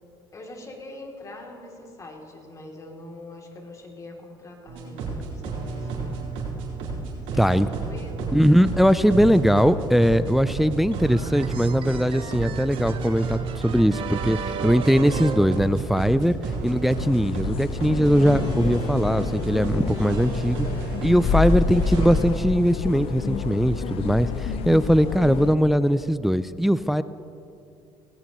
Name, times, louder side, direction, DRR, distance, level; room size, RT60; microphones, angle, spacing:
voice 1, 0.3-6.3 7.3-8.4, left 2 dB, 30° left, 0 dB, 2.8 m, -43 dB
sound 1, 4.7-22.2, right 4 dB, 75° right, 4.0 m, -31 dB
voice 2, 7.4-7.7 8.3-14.4 14.6-16.4 16.6-20.7 21.0-27.0, equal, ahead, 14 dB, 0.4 m, -20 dB
sound 2, 10.9-16.3, right 6 dB, 55° right, 1.2 m, -36 dB
sound 3, 17.0-25.6, left 6 dB, 60° left, 0.9 m, -28 dB
18.5 x 17.0 x 3.1 m, 2.8 s
supercardioid pair, 90°, 11 cm